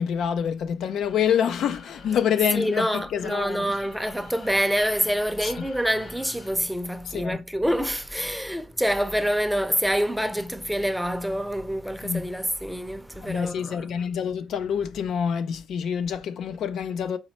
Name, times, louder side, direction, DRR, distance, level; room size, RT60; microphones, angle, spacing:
voice 1, 0.0-3.7 5.4-5.5 7.1-7.4 12.0-12.3 13.2-17.2, left 8 dB, 70° left, 0.4 m, -27 dB
sound 1, 0.9-6.6, left 4 dB, 55° left, 1.3 m, -49 dB
voice 2, 2.5-13.9, equal, ahead, 0.6 m, -26 dB
5.2 x 3.1 x 3.0 m
cardioid pair, 90°, 0 cm